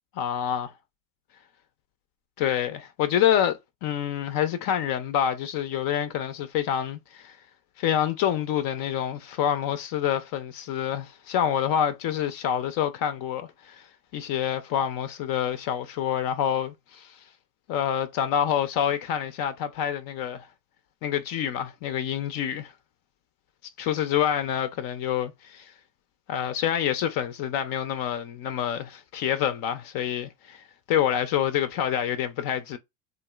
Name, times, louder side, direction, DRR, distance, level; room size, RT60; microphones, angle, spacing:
voice 1, 0.2-0.7 2.4-7.4 7.8-13.9 14.1-17.2 17.7-20.5 21.0-22.7 23.8-25.7 26.3-32.8, left 10 dB, 55° left, 0.6 m, -27 dB
3.0 x 2.6 x 2.3 m
supercardioid pair, 110°, 43 cm